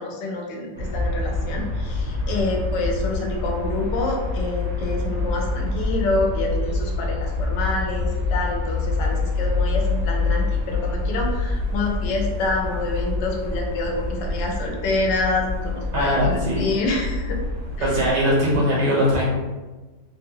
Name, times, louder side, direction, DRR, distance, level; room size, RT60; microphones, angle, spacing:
voice 1, 0.0-17.4 17.8-18.0, left 3 dB, 80° left, 0 dB, 1.3 m, -27 dB
sound 1, 0.7-18.1, left 2 dB, 65° right, 1.3 m, -26 dB
voice 2, 15.9-16.7 17.8-19.2, equal, 80° right, -4 dB, 1.9 m, -20 dB
3.8 x 2.4 x 3.0 m, 1.2 s
omnidirectional pair, 1.9 m